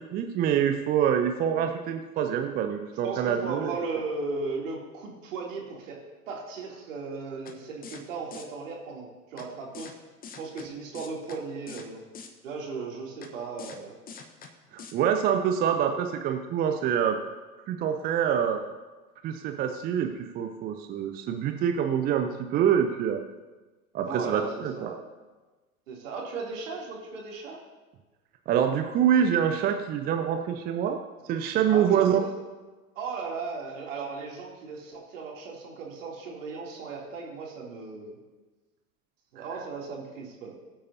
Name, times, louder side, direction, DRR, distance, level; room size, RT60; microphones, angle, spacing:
voice 1, 0.0-3.7 14.7-17.2 17.7-18.6 19.2-23.2 23.9-24.9 28.5-31.0 31.2-32.2 39.4-39.5, right 8 dB, 20° right, 5 dB, 0.6 m, -26 dB
voice 2, 3.0-6.0 6.3-9.9 10.4-12.0 12.4-13.9 24.0-25.0 25.9-27.6 31.7-32.3 32.9-38.2 39.3-40.5, right 4 dB, 60° right, -2 dB, 3.0 m, -36 dB
sound 1, 7.5-7.6 7.8-8.0 8.3-8.4 9.4-9.5 9.7-9.9 10.2-10.7 10.9-11.4 11.7-11.9 12.1-12.3 13.2-13.3 13.6-13.8 14.1-14.5 14.8-14.9, left 6 dB, 20° left, 1.1 m, -43 dB
20.5 x 8.7 x 2.8 m, 1.2 s
figure-of-eight pair, 90°, 45 cm